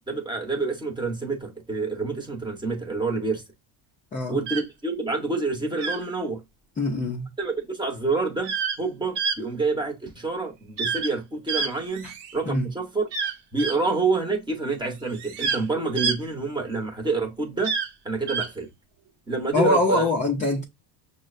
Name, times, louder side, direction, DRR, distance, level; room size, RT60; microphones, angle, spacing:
voice 1, 0.1-3.4 4.3-6.4 7.4-13.1 13.5-17.7 18.0-18.7 19.3-20.1, right 3 dB, 10° right, 0.7 m, -28 dB
sound 1, 4.5-4.6 5.8-6.0 8.4-8.8 9.2-9.4 10.8-11.1 11.5-12.4 13.1-13.8 15.1-15.6 16.0-16.2 17.6-17.9 18.3-18.5, right 5 dB, 55° right, 0.9 m, -27 dB
voice 2, 6.8-7.3 12.0-12.1 12.5-12.7 19.5-20.6, left 2 dB, 20° left, 0.3 m, -23 dB
6.1 x 2.1 x 2.4 m
cardioid pair, 145°, 49 cm